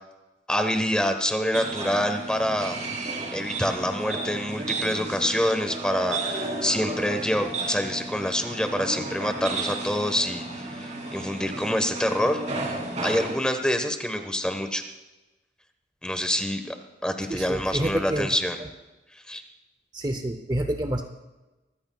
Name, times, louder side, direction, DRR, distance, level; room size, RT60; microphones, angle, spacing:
voice 1, 0.5-2.8 3.3-10.5 10.8-12.4 13.0-14.8 16.0-16.7 17.0-18.6 19.3-19.4, equal, 5° left, 7 dB, 1.2 m, -26 dB
sound 1, 1.5-13.4, right 2 dB, 40° right, 3.2 m, -33 dB
voice 2, 17.3-18.3 19.9-21.0, right 1 dB, 25° right, 6 dB, 0.7 m, -28 dB
24.0 x 15.0 x 2.4 m, 1.1 s
head